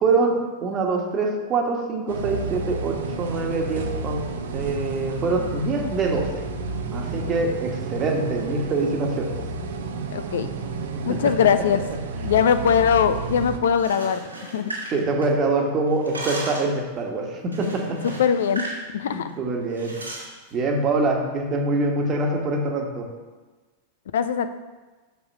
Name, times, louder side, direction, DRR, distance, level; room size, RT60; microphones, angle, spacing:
voice 1, 0.0-4.2 4.5-6.5 6.9-9.4 11.1-11.3 14.9-18.1 19.0-20.0 20.5-23.1, right 3 dB, 30° right, 2 dB, 1.4 m, -24 dB
sound 1, 2.1-13.6, right 4 dB, 60° right, 0.7 m, -31 dB
voice 2, 10.1-10.5 11.1-11.8 12.2-14.2 14.5-14.7 18.0-18.7 18.9-19.3 24.1-24.5, left 7 dB, 60° left, 11 dB, 0.4 m, -21 dB
sound 2, 13.7-15.6 15.9-16.8 17.5-18.8 19.1-19.3 19.7-20.3, right 2 dB, 85° right, 2.0 m, -35 dB
6.3 x 5.8 x 5.4 m, 1.3 s
figure-of-eight pair, 90°, 0 cm